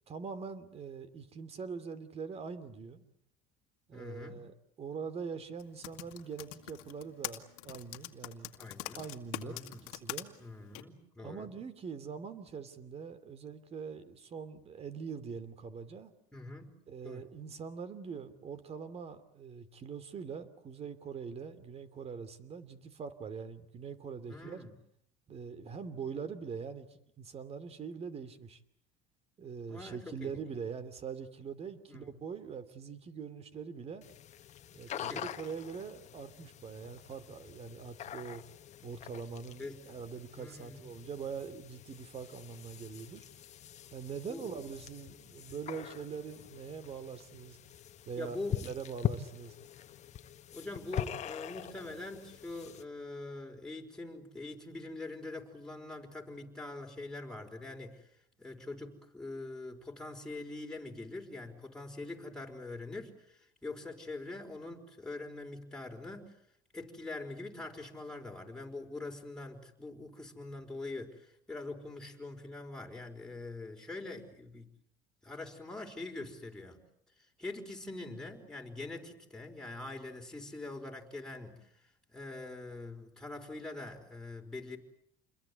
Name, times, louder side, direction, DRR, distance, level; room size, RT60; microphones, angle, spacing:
voice 1, 0.1-3.1 3.9-8.5 9.0-10.3 11.2-16.1 16.9-24.6 25.3-26.9 27.2-28.6 29.4-34.1 34.7-38.4 38.8-43.2 43.9-47.6 48.0-49.5, right 6 dB, 35° right, 13 dB, 2.8 m, -43 dB
voice 2, 3.9-4.5 8.6-9.1 9.4-9.9 10.4-11.5 16.3-16.7 17.0-17.3 24.3-24.7 29.7-30.4 31.9-32.1 34.9-35.3 39.6-39.8 40.3-40.8 44.3-44.5 48.1-48.6 50.5-58.1 58.4-66.3 66.7-74.7 75.2-76.8 77.4-81.7 82.1-84.8, left 2 dB, 5° left, 0 dB, 4.7 m, -44 dB
Typing, 5.6-10.2 10.7-10.8, left 19 dB, 90° left, 2.0 m, -42 dB
sound 1, 34.0-52.8, left 10 dB, 40° left, 1.5 m, -43 dB
28.5 x 22.0 x 8.2 m, 0.70 s
supercardioid pair, 115°, 18 cm